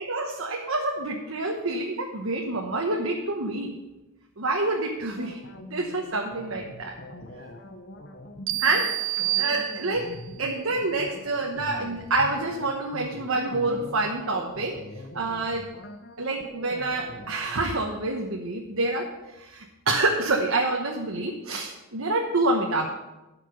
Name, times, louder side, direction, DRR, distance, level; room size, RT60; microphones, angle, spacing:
voice 1, 0.0-3.7 4.4-5.4 5.7-6.9 8.6-14.8 15.1-15.7 16.2-19.1 19.4-22.9, right 2 dB, 85° right, 1 dB, 1.1 m, -27 dB
sound 1, 5.1-17.6, left 1 dB, 55° left, 1.0 m, -43 dB
sound 2, 8.5-10.3, right 18 dB, 70° right, 0.4 m, -29 dB
13.0 x 5.9 x 5.7 m, 1.0 s
head